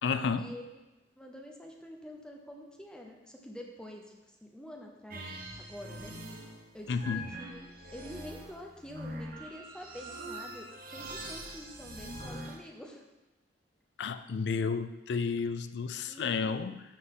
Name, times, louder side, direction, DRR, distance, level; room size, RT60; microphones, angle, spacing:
voice 1, 0.0-0.5 6.9-7.2 14.0-16.8, left 5 dB, 70° left, 12 dB, 0.4 m, -31 dB
voice 2, 1.2-4.1 4.4-5.3 5.6-6.4 6.7-7.6 7.9-13.0 16.1-16.7, left 1 dB, 5° left, 1 dB, 0.7 m, -47 dB
sound 1, 5.1-12.6, right 1 dB, 55° right, 1.0 m, -43 dB
11.5 x 3.9 x 3.7 m, 1.1 s
head